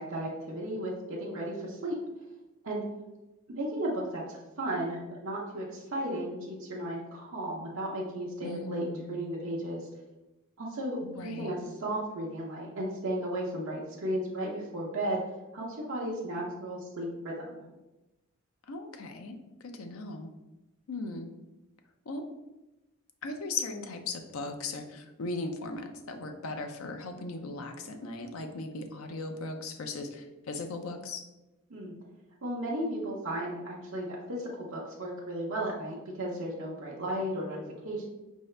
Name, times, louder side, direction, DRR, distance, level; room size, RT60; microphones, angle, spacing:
voice 1, 0.0-1.9 2.6-2.8 3.5-9.9 10.6-15.2 15.5-17.6 31.7-31.9 32.4-38.0, right 1 dB, 65° right, -4 dB, 0.7 m, -34 dB
voice 2, 8.4-9.2 11.0-11.5 18.7-20.3 20.9-21.3 22.1-22.3 23.2-31.2, left 3 dB, 70° left, 6 dB, 0.5 m, -38 dB
4.7 x 2.7 x 3.2 m, 1.0 s
head